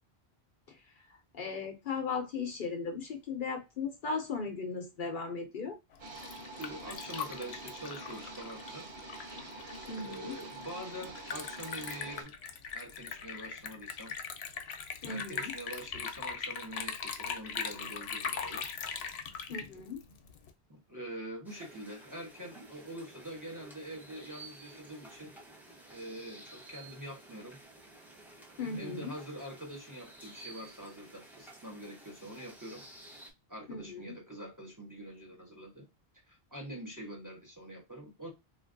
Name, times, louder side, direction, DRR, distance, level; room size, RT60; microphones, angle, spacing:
voice 1, 1.3-5.8 9.9-10.4 15.0-15.5 19.5-20.0 28.6-29.1 33.7-34.1, left 4 dB, 60° left, 0.7 m, -37 dB
Liquid, 5.9-20.5, left 6 dB, 90° left, 0.8 m, -40 dB
sound 1, 6.0-12.2, right 2 dB, 75° right, 1.4 m, -46 dB
voice 2, 6.6-8.9 9.9-12.3 12.7-14.1 15.1-18.7 20.7-25.3 25.9-27.6 28.7-32.8 33.5-35.9 36.3-38.3, right 1 dB, 20° right, 0.9 m, -45 dB
sound 2, 21.4-33.3, right 2 dB, ahead, 0.5 m, -53 dB
3.2 x 2.5 x 2.5 m
omnidirectional pair, 1.0 m